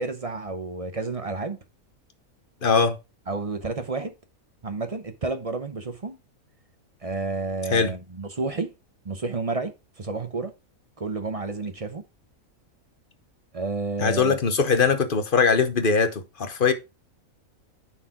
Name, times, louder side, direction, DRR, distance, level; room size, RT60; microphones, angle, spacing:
voice 1, 0.0-1.6 3.3-4.1 4.6-6.2 7.0-8.7 9.0-10.5 11.0-12.0 13.5-14.4, right 3 dB, 35° right, 0.7 m, -30 dB
voice 2, 2.6-3.0 7.7-7.9 14.0-16.7, left 5 dB, 45° left, 1.0 m, -21 dB
9.6 x 4.6 x 3.6 m
omnidirectional pair, 1.5 m